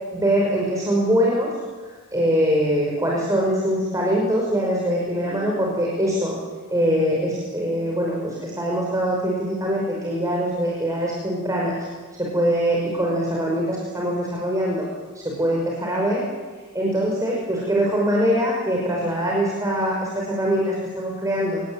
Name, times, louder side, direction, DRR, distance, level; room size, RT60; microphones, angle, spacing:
voice 1, 0.1-1.5 2.1-6.4 6.7-11.8 12.2-14.9 15.2-16.2 16.7-21.6, equal, 15° right, -3 dB, 5.5 m, -23 dB
27.5 x 20.5 x 8.9 m, 1.4 s
head